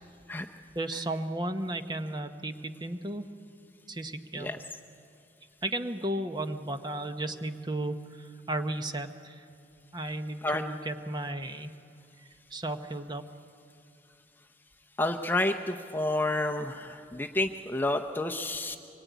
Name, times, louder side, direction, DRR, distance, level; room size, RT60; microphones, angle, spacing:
voice 1, 0.7-3.3 3.9-4.5 5.6-9.4 9.9-11.7 12.5-13.2, right 1 dB, 25° right, 7 dB, 0.9 m, -34 dB
voice 2, 15.0-18.8, left 1 dB, 10° left, 4 dB, 0.7 m, -29 dB
24.5 x 22.5 x 9.3 m, 2.5 s
head